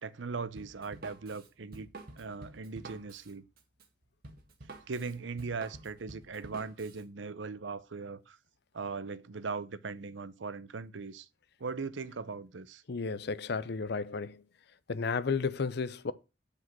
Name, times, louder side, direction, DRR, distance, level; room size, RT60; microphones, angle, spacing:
voice 1, 0.0-1.9 2.2-3.4 4.9-8.4 8.7-11.3 11.6-12.8, right 4 dB, 90° right, 0.7 m, -39 dB
Drum kit, 0.6-7.0, right 2 dB, 55° right, 1.7 m, -49 dB
voice 2, 12.9-14.4 14.9-16.1, left 4 dB, 65° left, 0.6 m, -33 dB
8.3 x 5.0 x 5.8 m
head